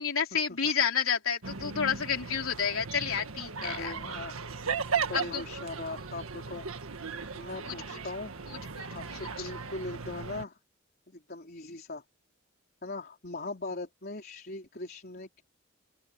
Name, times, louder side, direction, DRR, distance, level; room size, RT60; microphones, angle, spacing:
voice 1, 0.0-3.9 5.1-5.4 7.7-7.8 8.8-8.9 9.2-9.5, left 7 dB, 80° left, 3.4 m, -30 dB
sound 1, 1.4-10.5, right 5 dB, 85° right, 1.7 m, -37 dB
voice 2, 3.6-4.4 5.0-6.7 7.3-8.3 8.9-10.6 11.1-12.0 12.8-15.4, left 2 dB, 45° left, 3.9 m, -40 dB
open air
head